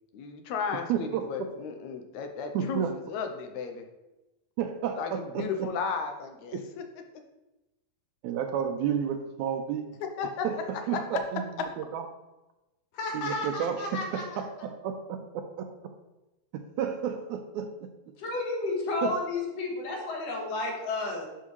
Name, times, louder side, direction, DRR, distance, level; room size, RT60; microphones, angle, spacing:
voice 1, 0.1-3.9 4.9-6.8 10.0-11.2 11.6-11.7, left 5 dB, 85° left, 5 dB, 2.0 m, -34 dB
voice 2, 0.9-1.2 2.5-2.9 4.6-5.5 6.5-6.7 8.2-9.9 10.4-10.6 10.9-11.4 11.9-12.0 13.1-15.7 16.5-17.7 19.0-19.1, right 8 dB, 85° right, 4 dB, 2.0 m, -31 dB
voice 3, 12.9-14.4 18.2-21.2, left 2 dB, 65° left, -1 dB, 2.5 m, -32 dB
10.5 x 4.4 x 3.2 m, 1.0 s
omnidirectional pair, 3.3 m